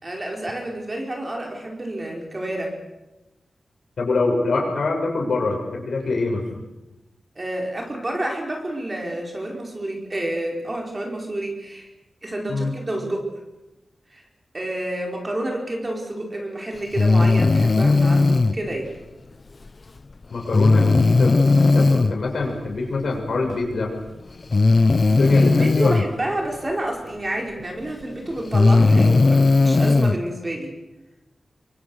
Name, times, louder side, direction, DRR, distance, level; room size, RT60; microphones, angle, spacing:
voice 1, 0.0-2.8 7.3-11.9 12.2-13.3 14.1-14.2 14.5-18.9 24.8-24.9 25.3-30.8, right 1 dB, 25° right, 1 dB, 4.9 m, -29 dB
voice 2, 4.0-6.4 12.5-12.7 20.3-23.9 25.1-26.0, left 3 dB, 75° left, 1 dB, 6.8 m, -24 dB
Breathing, 16.9-18.5 20.5-22.1 23.5-23.6 24.5-26.1 27.6-27.7 28.4-30.2, left 3 dB, 40° left, 0.8 m, -16 dB
28.5 x 24.0 x 6.5 m, 1.0 s
wide cardioid pair, 145°, 0 cm